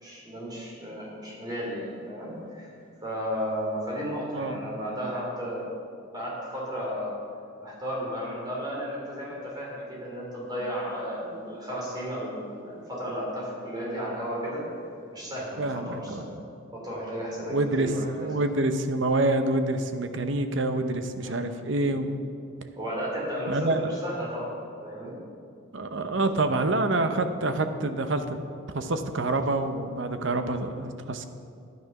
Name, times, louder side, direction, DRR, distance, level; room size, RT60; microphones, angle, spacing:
voice 1, 0.0-2.7 3.0-5.6 6.1-7.1 7.6-14.7 15.1-16.3 16.7-18.3 21.2-21.4 22.8-24.5 24.8-25.2, equal, 20° right, -5 dB, 3.4 m, -34 dB
voice 2, 15.6-16.4 17.5-22.1 23.5-23.8 25.7-28.4 28.7-31.3, right 2 dB, 60° right, 8 dB, 0.8 m, -27 dB
10.5 x 9.4 x 5.9 m, 2.4 s
head